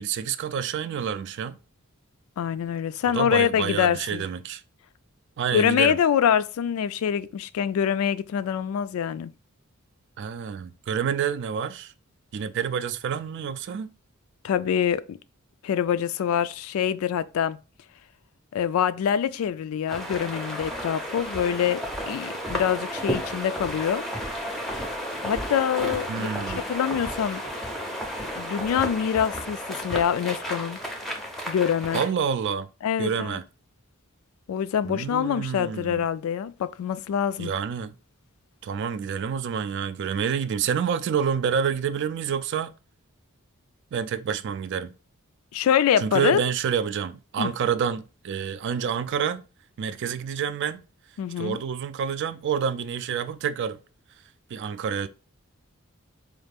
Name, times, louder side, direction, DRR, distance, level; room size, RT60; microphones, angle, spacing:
voice 1, 0.0-1.6 3.0-4.6 5.4-6.0 10.2-11.9 12.3-13.9 26.1-26.6 31.9-32.7 33.0-33.4 34.8-36.0 37.4-38.0 38.6-42.7 43.9-44.9 46.0-49.4 49.8-50.8 51.4-53.8 54.5-55.1, right 7 dB, 55° right, 0.3 m, -28 dB
voice 2, 2.4-4.2 5.5-9.3 14.4-15.2 15.6-17.6 18.5-24.0 25.2-27.4 28.4-30.8 31.5-32.0 32.8-33.4 34.5-37.5 45.5-46.4 47.4-47.5 51.2-51.6, left 8 dB, 75° left, 0.3 m, -25 dB
sound 1, 19.9-32.1, equal, ahead, 0.5 m, -33 dB
4.2 x 2.4 x 3.4 m
head